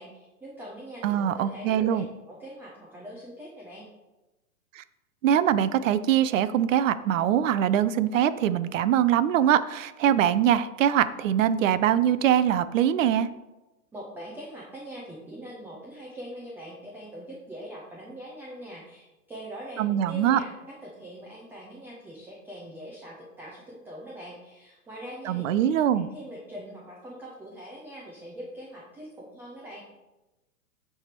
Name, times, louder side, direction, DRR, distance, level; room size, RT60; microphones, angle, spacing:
voice 1, 0.0-3.9 13.9-20.5 20.8-25.6 25.9-29.8, right 1 dB, 5° right, -4 dB, 0.5 m, -42 dB
voice 2, 1.0-2.1 4.8-4.9 5.2-13.3 19.8-20.4 25.2-26.1, right 10 dB, 65° right, 14 dB, 0.5 m, -23 dB
8.8 x 3.4 x 4.4 m, 1.0 s
hypercardioid pair, 130°, 43 cm